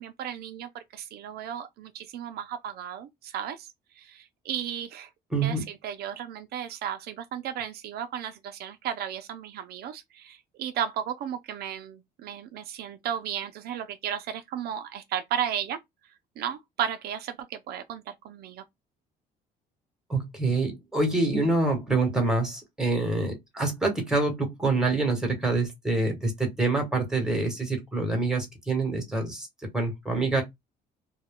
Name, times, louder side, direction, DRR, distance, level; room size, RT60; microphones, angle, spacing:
voice 1, 0.0-3.7 4.0-5.1 5.4-15.8 16.4-18.6, right 9 dB, 70° right, 0.4 m, -34 dB
voice 2, 5.3-5.6 20.1-29.5 29.7-30.4, right 3 dB, 5° right, 1.2 m, -26 dB
2.2 x 2.2 x 3.6 m
cardioid pair, 110°, 17 cm